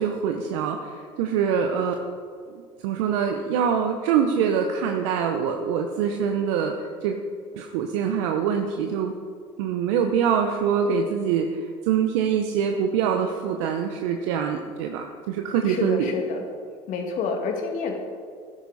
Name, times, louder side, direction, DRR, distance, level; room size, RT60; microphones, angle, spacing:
voice 1, 0.0-2.0 2.5-7.2 7.5-9.1 9.6-16.1, right 7 dB, 75° right, 4 dB, 0.8 m, -24 dB
voice 2, 15.7-16.4 16.9-18.0, left 4 dB, 60° left, 2 dB, 2.1 m, -28 dB
13.0 x 9.9 x 4.1 m, 2.1 s
hypercardioid pair, 80°, 15 cm